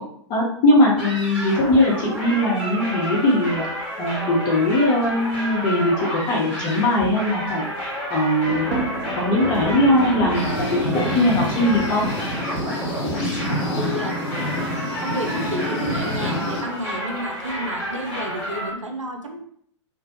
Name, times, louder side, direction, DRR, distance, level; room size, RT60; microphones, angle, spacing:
voice 1, 0.3-3.6 4.0-7.6 8.1-8.7 9.1-12.0, left 1 dB, 25° left, -3 dB, 0.6 m, -20 dB
sound 1, 1.0-18.7, equal, 5° right, 1.1 m, -30 dB
Thunder, 8.5-13.0, right 2 dB, 65° right, 1.0 m, -30 dB
sound 2, 10.3-16.9, left 1 dB, 55° left, 0.9 m, -28 dB
voice 2, 13.8-14.2 15.0-19.4, right 1 dB, 85° right, 3 dB, 0.5 m, -31 dB
2.5 x 2.1 x 2.7 m, 0.66 s
figure-of-eight pair, 105°, 16 cm